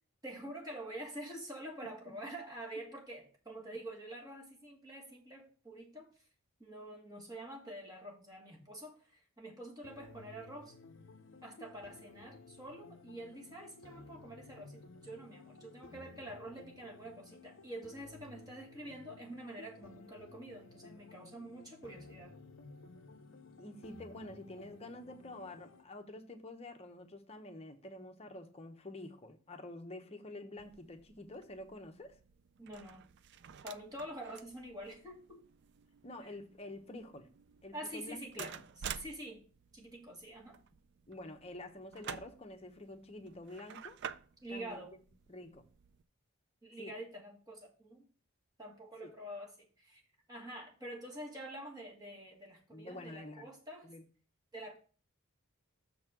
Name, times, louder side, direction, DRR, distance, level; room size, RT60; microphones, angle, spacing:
voice 1, 0.2-6.3 6.6-10.8 11.4-22.3 32.6-33.0 33.6-35.4 36.2-36.4 37.7-38.6 39.0-39.4 39.7-40.6 44.4-44.9 46.6-48.0 48.6-50.0 50.3-53.9 54.5-54.8, right 1 dB, 15° right, -1 dB, 1.7 m, -47 dB
sound 1, 9.8-25.8, left 4 dB, 55° left, 0.6 m, -55 dB
voice 2, 23.6-32.2 36.0-37.3 37.6-38.5 41.1-44.0 44.5-44.8 45.3-45.6 46.8-46.9 49.0-49.1 52.7-53.5 53.8-54.0, left 1 dB, 25° left, 5 dB, 0.8 m, -48 dB
sound 2, 30.6-46.0, right 8 dB, 50° right, 0.3 m, -51 dB
6.8 x 4.1 x 5.9 m, 0.38 s
head